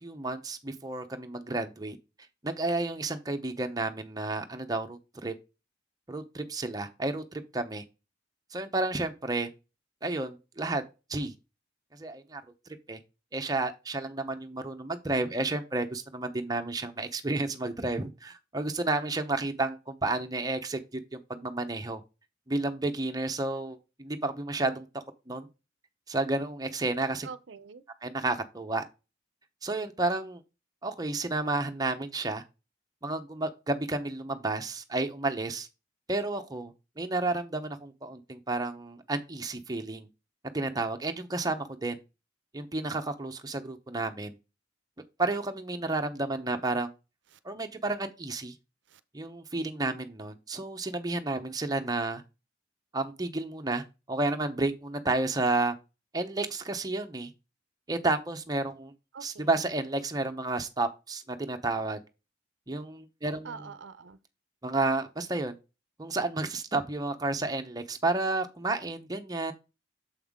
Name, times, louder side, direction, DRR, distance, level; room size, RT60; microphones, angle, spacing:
voice 1, 0.0-2.0 2.4-5.3 6.1-7.8 8.5-9.5 10.0-10.8 11.1-11.3 11.9-12.4 12.9-13.0 13.3-22.0 22.5-25.5 26.1-27.3 28.0-28.8 29.6-30.4 30.8-32.4 33.0-35.7 36.1-40.1 40.5-42.0 42.5-44.3 45.2-46.9 47.4-48.5 49.1-52.2 52.9-55.8 56.1-57.3 57.9-58.9 59.2-62.0 62.7-63.7 64.6-65.6 66.0-69.5, right 2 dB, 20° right, 0.7 m, -31 dB
voice 2, 27.3-27.8 59.1-59.5 63.5-64.2, right 5 dB, 70° right, 0.6 m, -44 dB
7.2 x 5.5 x 3.6 m
head